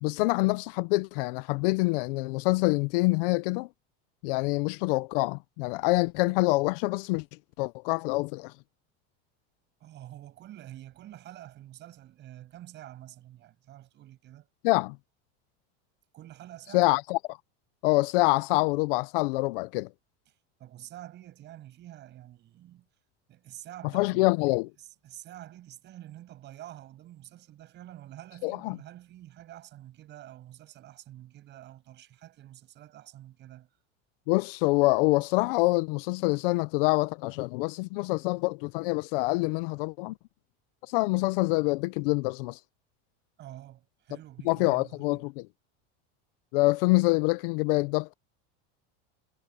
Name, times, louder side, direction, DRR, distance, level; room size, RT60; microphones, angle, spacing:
voice 1, 0.0-3.7 4.2-7.2 7.6-8.5 14.6-15.0 16.7-17.4 17.8-19.9 23.9-24.7 28.4-28.8 34.3-40.1 40.9-42.6 44.5-45.4 46.5-48.1, left 24 dB, 55° left, 0.5 m, -26 dB
voice 2, 9.8-14.5 16.1-16.9 20.3-22.9 23.3-24.3 24.8-33.7 43.4-45.2, right 13 dB, 30° right, 8.0 m, -48 dB
cardioid pair, 175°, 34 cm